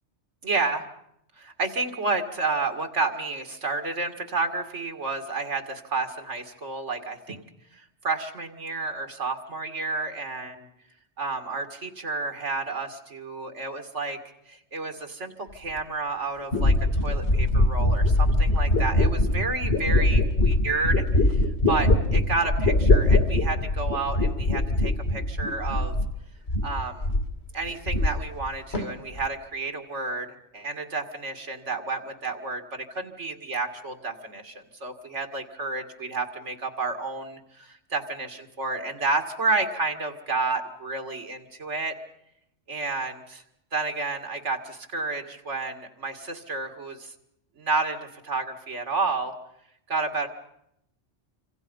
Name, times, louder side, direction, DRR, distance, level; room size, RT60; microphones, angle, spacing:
voice 1, 0.4-0.8 1.4-7.4 7.7-10.7 11.2-14.2 14.5-16.7 17.0-21.4 21.7-26.0 26.6-27.1 27.5-30.3 30.5-41.9 42.7-43.4 43.7-47.1 47.6-49.3 49.9-50.3, right 3 dB, 90° right, 6 dB, 2.5 m, -30 dB
sound 1, 15.8-15.9 16.5-26.2 26.5-27.3 27.6-28.5 28.7-29.3, left 1 dB, 65° left, 2.8 m, -22 dB
26.5 x 26.0 x 5.5 m, 0.77 s
omnidirectional pair, 1.2 m